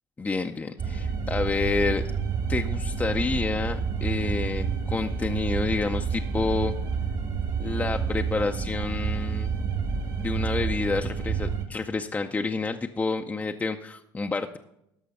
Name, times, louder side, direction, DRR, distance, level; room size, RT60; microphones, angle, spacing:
voice 1, 0.2-2.0 2.5-6.7 7.6-9.5 10.2-14.6, left 3 dB, 15° left, 5 dB, 0.5 m, -29 dB
sound 1, 0.8-11.7, right 6 dB, 50° right, 1.6 m, -29 dB
13.5 x 5.5 x 5.3 m, 0.81 s
cardioid pair, 105°, 9 cm